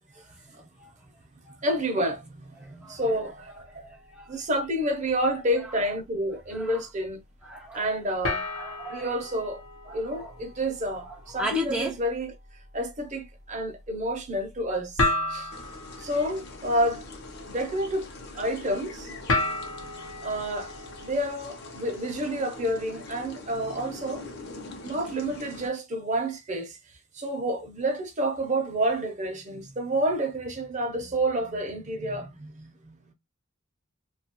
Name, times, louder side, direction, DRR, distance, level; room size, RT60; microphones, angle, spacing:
voice 1, 1.6-3.9 4.3-7.2 7.7-8.4 8.9-9.6 9.9-12.3 12.7-15.0 15.3-15.5 16.0-17.0 17.5-18.1 18.3-19.1 20.2-20.7 21.0-24.2 24.8-26.8 27.1-33.0, right 1 dB, 35° right, 0.7 m, -29 dB
voice 2, 2.6-3.0 3.8-4.4 6.5-6.8 7.4-7.9 8.5-9.1 9.9-10.3 11.1-12.0, right 1 dB, 5° right, 0.4 m, -35 dB
sound 1, 3.0-4.5 4.9-5.3 5.8-5.9 8.2-21.2, left 2 dB, 85° left, 0.9 m, -34 dB
sound 2, 15.5-25.7, left 2 dB, 55° left, 0.8 m, -43 dB
2.8 x 2.4 x 2.8 m
head